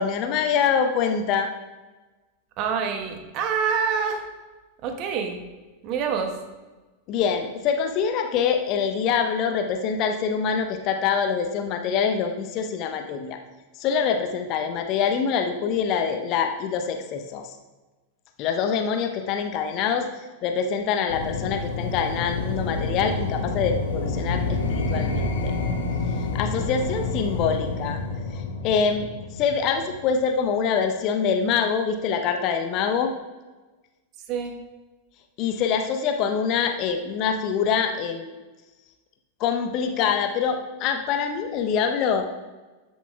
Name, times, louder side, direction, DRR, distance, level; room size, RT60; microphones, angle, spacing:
voice 1, 0.0-1.5 7.1-13.4 13.8-17.5 18.4-20.1 20.4-25.6 26.3-28.0 28.3-29.1 29.3-33.1 35.4-38.3 39.4-42.3, left 6 dB, 40° left, 5 dB, 0.8 m, -25 dB
voice 2, 2.6-4.2 4.8-5.4 5.8-6.3 34.3-34.5, right 6 dB, 40° right, 5 dB, 1.2 m, -26 dB
sound 1, 21.1-30.1, left 3 dB, 65° left, 1.2 m, -28 dB
13.5 x 7.2 x 2.3 m, 1.2 s
figure-of-eight pair, 90°, 0 cm